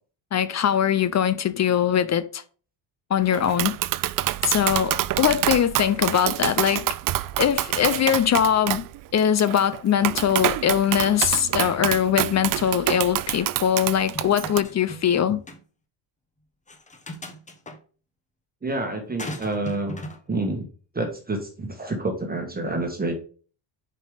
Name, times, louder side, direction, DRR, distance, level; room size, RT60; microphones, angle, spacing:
voice 1, 0.3-2.4 3.1-3.7 4.4-6.9 7.4-8.9 9.1-15.4, left 9 dB, 35° left, 0.6 m, -22 dB
Tap, 3.3-14.6, right 15 dB, 50° right, 0.5 m, -27 dB
sound 1, 14.1-15.2 15.5-15.6 16.7-17.8 19.2-20.2, left 1 dB, 15° left, 1.2 m, -37 dB
voice 2, 18.6-20.0 20.3-20.7 20.9-23.2, right 2 dB, 20° right, 1.6 m, -28 dB
5.4 x 5.3 x 5.0 m
cardioid pair, 100°, 46 cm